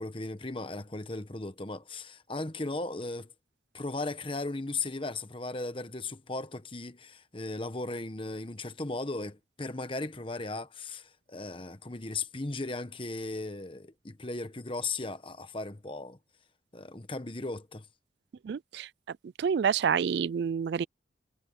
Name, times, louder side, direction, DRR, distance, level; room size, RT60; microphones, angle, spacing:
voice 1, 0.0-3.3 3.7-16.2 16.7-17.9, left 2 dB, 25° left, 1.1 m, -37 dB
voice 2, 18.4-18.9 19.4-20.9, right 7 dB, 60° right, 0.3 m, -28 dB
head